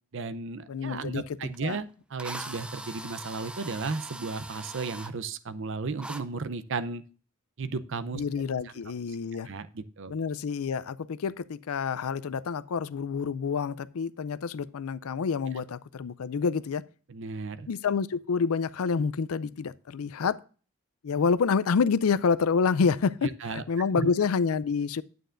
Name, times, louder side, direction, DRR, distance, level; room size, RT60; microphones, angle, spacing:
voice 1, 0.1-7.0 7.6-8.2 8.6-8.7 9.4-10.1 17.1-17.7 23.4-23.6 23.9-24.1, right 4 dB, 60° right, 0.6 m, -34 dB
voice 2, 0.7-1.2 1.6-1.8 8.1-9.5 10.1-16.8 17.7-20.4 21.0-25.0, left 5 dB, 75° left, 0.4 m, -28 dB
Drill, 1.5-1.6 2.2-5.1 6.0-6.2, right 1 dB, 5° right, 0.4 m, -41 dB
9.2 x 9.0 x 2.5 m
head